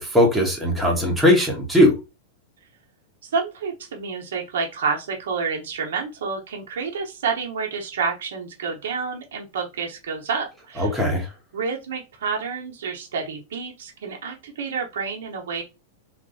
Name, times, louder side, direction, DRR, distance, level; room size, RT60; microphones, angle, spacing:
voice 1, 0.0-2.0 10.8-11.3, left 1 dB, 5° right, 1.2 m, -19 dB
voice 2, 3.2-10.9 11.5-15.6, right 5 dB, 85° right, 0.9 m, -29 dB
3.2 x 2.6 x 2.6 m
hypercardioid pair, 130°, 0 cm